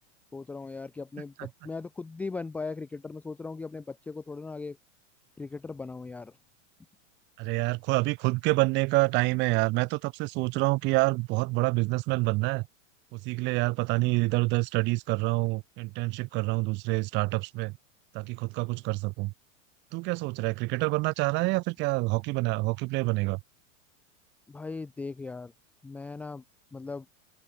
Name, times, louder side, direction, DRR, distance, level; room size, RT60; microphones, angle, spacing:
voice 1, 0.3-4.8 5.4-6.4 14.0-14.1 24.5-25.5 25.8-26.4 26.7-27.1, left 4 dB, 5° left, 0.7 m, -38 dB
voice 2, 7.4-12.7 13.1-17.8 18.1-19.3 19.9-23.4, right 24 dB, 30° right, 1.6 m, -27 dB
open air
supercardioid pair, 175°, 39 cm